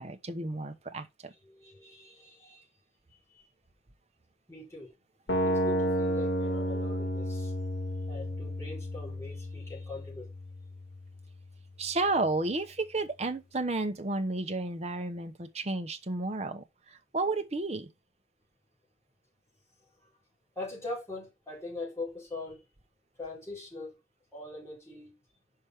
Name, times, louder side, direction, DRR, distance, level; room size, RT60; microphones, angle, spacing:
voice 1, 0.0-1.3 11.8-17.9, right 2 dB, 35° right, 0.9 m, -32 dB
voice 2, 1.5-2.6 3.3-3.4 4.5-4.9 5.4-7.5 8.1-10.3 20.6-22.6 23.2-23.9 24.3-25.1, left 2 dB, 15° left, 4.5 m, -42 dB
sound 1, 5.3-11.3, equal, 85° left, 1.9 m, -32 dB
5.7 x 5.2 x 4.8 m
head